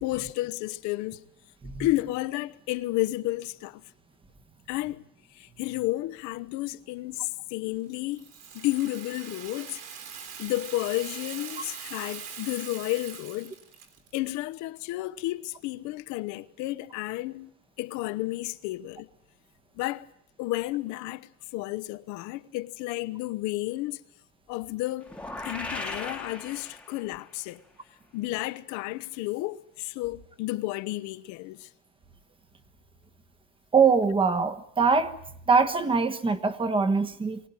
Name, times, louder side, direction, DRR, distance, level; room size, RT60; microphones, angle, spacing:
voice 1, 0.0-1.2 1.8-3.8 4.7-5.0 5.3-8.3 8.5-9.8 10.4-13.5 14.1-17.5 17.8-19.1 19.7-20.1 20.4-24.0 24.5-25.2 25.4-27.6 28.1-31.7, left 18 dB, 55° left, 1.0 m, -32 dB
Rattle (instrument), 8.1-14.1, right 7 dB, 45° right, 3.5 m, -42 dB
sound 1, 25.0-27.3, left 2 dB, 5° left, 1.4 m, -37 dB
voice 2, 33.7-35.1 35.5-37.4, right 5 dB, 15° right, 1.3 m, -23 dB
23.5 x 17.5 x 9.0 m
supercardioid pair, 140°, 34 cm